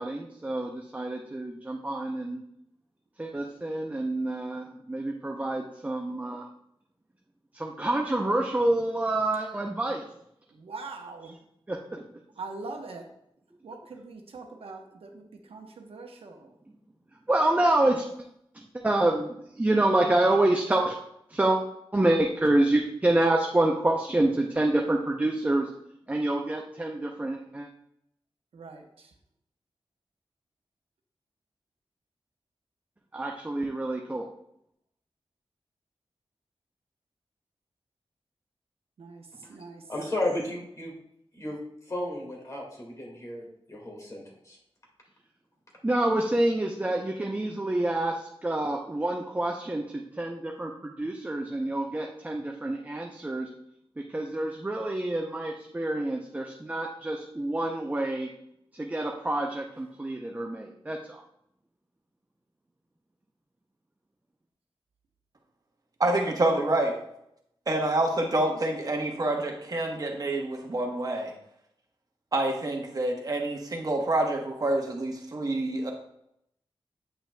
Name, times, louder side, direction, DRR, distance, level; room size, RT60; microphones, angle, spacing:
voice 1, 0.0-2.4 3.2-6.5 7.5-10.1 11.7-12.0 17.3-18.1 18.5-21.0 21.3-21.6 21.9-25.7 26.1-27.7 33.1-34.3 45.8-53.5 54.0-58.3 58.7-61.2, right 1 dB, 15° right, 1 dB, 0.5 m, -27 dB
voice 2, 10.5-11.3 12.4-13.1 13.6-16.5 28.5-29.1 39.0-39.8, right 3 dB, 85° right, 3 dB, 0.9 m, -42 dB
voice 3, 39.9-40.9 41.3-41.6 41.9-44.6, left 1 dB, 35° left, -1 dB, 1.8 m, -34 dB
voice 4, 66.0-66.9 67.7-71.3 72.3-75.9, right 2 dB, 40° right, 1 dB, 1.1 m, -27 dB
8.4 x 5.7 x 2.2 m, 0.76 s
wide cardioid pair, 130°, 9 cm